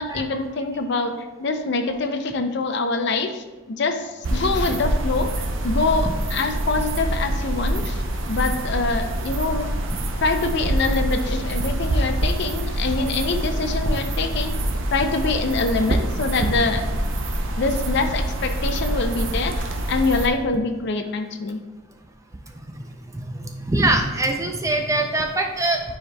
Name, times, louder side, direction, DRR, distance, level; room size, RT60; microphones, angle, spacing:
voice 1, 0.0-8.0 8.3-9.7 10.2-14.5 14.9-16.9 17.6-21.6, left 3 dB, 55° left, 7 dB, 0.5 m, -25 dB
sound 1, 4.2-20.3, right 1 dB, 60° right, 0.6 m, -25 dB
voice 2, 23.1-25.8, right 2 dB, 15° right, 3 dB, 0.4 m, -23 dB
9.8 x 4.7 x 2.2 m, 1.2 s
head